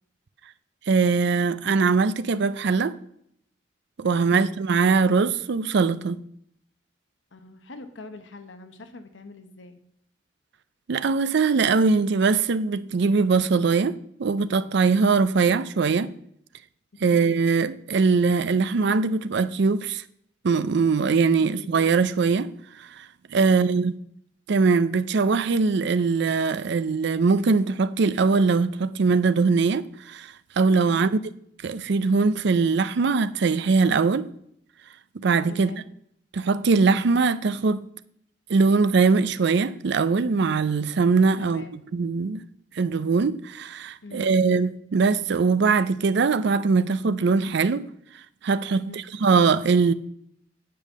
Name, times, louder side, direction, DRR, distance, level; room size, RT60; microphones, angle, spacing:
voice 1, 0.9-2.9 4.0-6.2 10.9-16.1 17.0-20.0 20.4-22.5 23.0-23.1 23.3-23.9 24.5-31.1 31.6-34.3 35.2-35.7 36.3-37.9 38.5-42.4 42.8-47.9 48.4-49.9, right 4 dB, 70° right, 0.5 m, -21 dB
voice 2, 4.1-4.5 7.3-9.8 17.0-17.2 21.4-21.8 23.4-23.7 30.9-31.1 35.5-35.9 41.4-41.7 44.0-44.5 48.7-49.0, left 3 dB, 80° left, 1.0 m, -43 dB
8.5 x 5.3 x 7.3 m
head